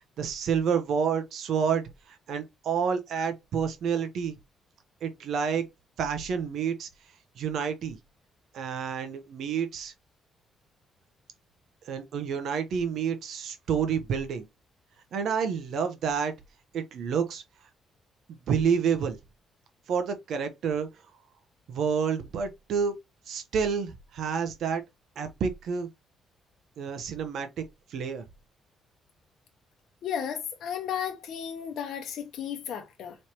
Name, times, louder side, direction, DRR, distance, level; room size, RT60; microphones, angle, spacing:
voice 1, 0.2-4.4 5.0-5.6 6.0-6.9 7.4-8.0 8.5-9.9 11.8-14.5 15.1-16.3 16.7-17.4 18.5-19.2 19.9-20.9 21.7-22.9 23.3-24.8 25.2-25.9 26.8-27.6 27.9-28.2, right 6 dB, 70° right, 0.8 m, -29 dB
voice 2, 30.0-33.1, left 8 dB, 75° left, 0.8 m, -34 dB
4.4 x 3.2 x 2.9 m
cardioid pair, 90°, 0 cm